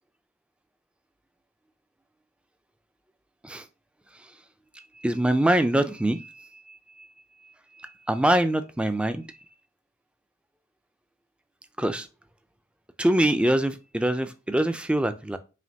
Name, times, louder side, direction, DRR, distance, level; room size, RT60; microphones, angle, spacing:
voice 1, 5.0-7.1 7.8-9.3 11.8-12.1 13.0-15.4, right 1 dB, 5° right, 0.3 m, -24 dB
5.0 x 3.0 x 2.7 m
head